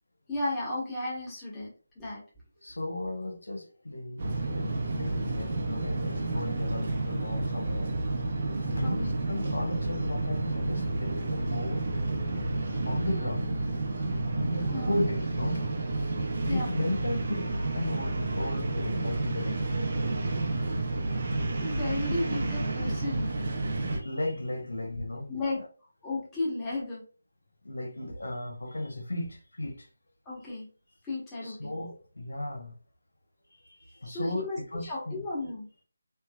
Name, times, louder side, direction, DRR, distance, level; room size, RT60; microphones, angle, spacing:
voice 1, 0.3-2.2 8.8-9.2 14.7-15.0 16.5-16.7 21.6-23.3 25.3-25.6 26.0-27.0 30.2-30.7 31.0-31.7 34.0-35.7, left 2 dB, 10° left, 1.0 m, -34 dB
voice 2, 2.6-7.9 8.6-11.8 12.9-13.6 14.2-15.6 16.0-17.5 17.7-19.6 23.8-25.6 27.6-29.9 31.4-32.7 33.6-35.2, left 1 dB, 90° left, 0.9 m, -35 dB
sound 1, 4.2-24.0, right 2 dB, 45° right, 0.8 m, -30 dB
3.3 x 3.1 x 2.3 m
figure-of-eight pair, 165°, 0 cm